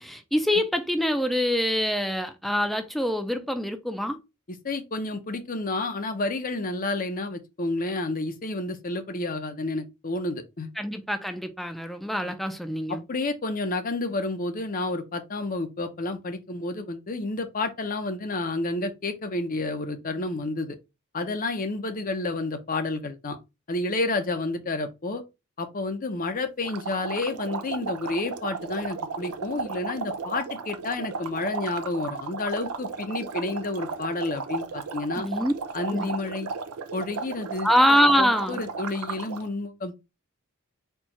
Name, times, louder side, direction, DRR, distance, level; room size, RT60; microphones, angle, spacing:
voice 1, 0.0-4.2 10.8-13.0 35.2-35.5 35.9-36.1 37.6-38.6, equal, ahead, 0.5 m, -24 dB
voice 2, 4.5-10.7 12.2-12.4 12.9-20.8 21.1-23.4 23.7-25.2 25.6-35.3 35.7-36.5 36.9-37.7 38.2-40.0, left 2 dB, 40° left, 0.7 m, -30 dB
sound 1, 26.6-39.5, right 5 dB, 80° right, 0.6 m, -35 dB
4.5 x 2.4 x 4.2 m
head